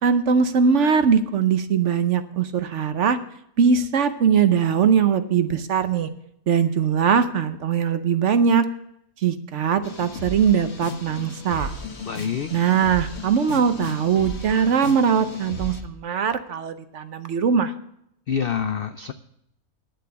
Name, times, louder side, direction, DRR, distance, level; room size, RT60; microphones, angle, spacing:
voice 1, 0.0-3.2 3.6-6.1 6.5-8.7 9.2-11.7 12.5-17.7, right 6 dB, 60° right, 10 dB, 1.0 m, -21 dB
sound 1, 9.8-15.8, left 1 dB, 45° left, 1.7 m, -35 dB
voice 2, 12.1-12.5 18.3-19.1, left 7 dB, 80° left, 10 dB, 0.5 m, -26 dB
10.5 x 7.7 x 6.9 m, 0.73 s
omnidirectional pair, 1.6 m